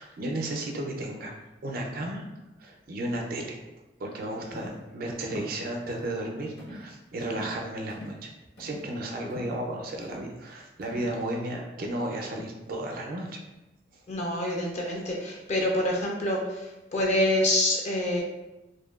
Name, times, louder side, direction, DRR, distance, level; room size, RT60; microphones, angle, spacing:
voice 1, 0.0-1.3 1.6-2.2 2.6-3.6 4.0-8.3 8.6-13.4 13.9-14.0, right 1 dB, 55° right, 1 dB, 0.4 m, -33 dB
sound 1, 4.6-4.8 5.2-5.5 5.9-6.1 6.6-6.9 7.2-7.6 7.9-8.2 8.6-8.9 9.3-9.6 10.0-10.3 10.8-11.1, equal, 65° left, 0.8 m, -43 dB
voice 2, 14.1-18.2, left 1 dB, 40° left, -2 dB, 0.4 m, -27 dB
2.6 x 2.1 x 2.2 m, 1.0 s
head